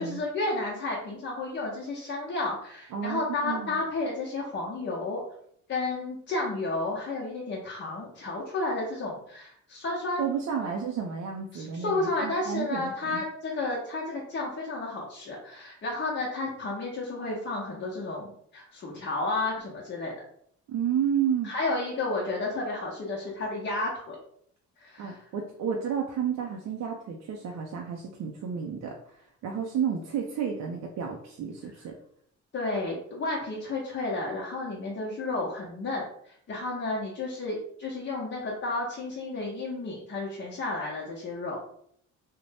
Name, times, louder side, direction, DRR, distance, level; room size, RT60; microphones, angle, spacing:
voice 1, 0.0-5.2 5.7-10.3 11.5-20.1 21.4-24.2 24.8-25.2 32.5-36.0 36.5-41.6, left 2 dB, 40° left, -4 dB, 0.7 m, -32 dB
voice 2, 2.9-3.8 10.2-13.2 20.7-21.5 25.0-28.9 29.4-31.9, right 7 dB, 65° right, 0 dB, 0.5 m, -31 dB
2.6 x 2.1 x 3.3 m, 0.66 s
cardioid pair, 90°, 30 cm